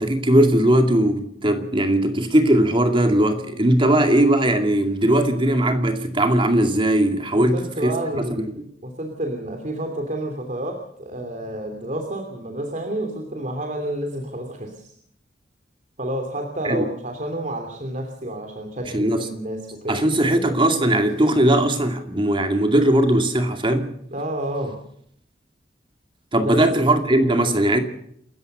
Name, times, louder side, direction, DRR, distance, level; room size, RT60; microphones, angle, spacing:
voice 1, 0.0-7.9 8.3-8.5 16.6-16.8 18.9-19.3 19.9-23.9 26.3-27.8, right 1 dB, 30° right, 2.3 m, -19 dB
voice 2, 7.3-8.5 8.8-14.9 16.0-20.0 24.1-24.8 26.4-26.6 27.2-27.3, right 1 dB, 45° right, 2.9 m, -29 dB
28.5 x 14.5 x 6.7 m
head